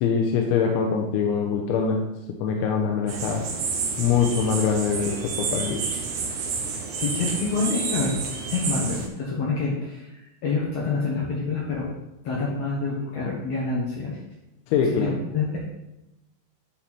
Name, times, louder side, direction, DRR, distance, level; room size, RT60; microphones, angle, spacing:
voice 1, 0.0-2.1 2.4-3.4 4.0-5.8 14.7-15.2, left 6 dB, 90° left, 2 dB, 3.2 m, -23 dB
sound 1, 3.1-9.1, right 5 dB, 70° right, 2.0 m, -30 dB
voice 2, 7.0-8.1 8.5-11.9 12.2-14.2 14.8-15.6, left 4 dB, 65° left, -5 dB, 1.6 m, -27 dB
12.0 x 4.3 x 4.4 m, 0.94 s
omnidirectional pair, 5.2 m